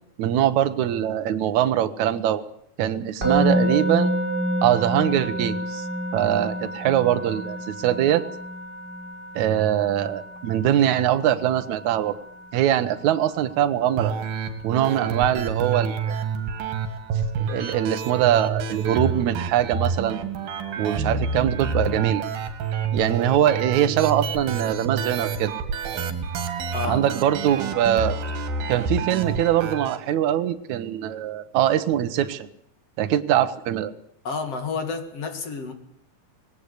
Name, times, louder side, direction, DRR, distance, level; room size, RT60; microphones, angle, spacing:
voice 1, 0.2-2.4 2.8-4.1 4.6-5.9 6.1-8.2 9.3-12.2 12.5-14.1 14.6-16.2 17.4-20.2 20.8-22.2 22.9-25.5 26.8-28.2 28.7-32.5 33.0-33.9, right 11 dB, 65° right, 10 dB, 2.2 m, -22 dB
Musical instrument, 3.2-14.3, equal, 25° right, 7.2 m, -29 dB
sound 1, 14.0-30.0, right 5 dB, 85° right, 3.8 m, -28 dB
voice 2, 34.2-35.7, left 4 dB, 45° left, 6 dB, 2.9 m, -30 dB
19.5 x 17.0 x 8.3 m, 0.72 s
omnidirectional pair, 4.1 m